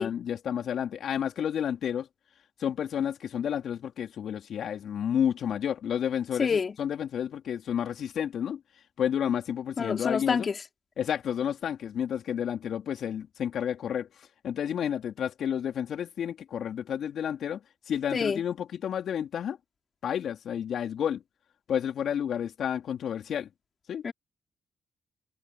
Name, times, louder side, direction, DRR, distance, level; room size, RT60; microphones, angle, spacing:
voice 1, 0.0-2.1 2.6-8.6 9.0-10.5 11.0-17.6 17.9-19.6 20.0-21.2 21.7-23.5 23.9-24.0, left 9 dB, 70° left, 3.3 m, -30 dB
voice 2, 6.4-6.7 9.8-10.6 18.1-18.4 24.0-24.1, left 5 dB, 55° left, 3.9 m, -27 dB
hypercardioid pair, 45°, 0 cm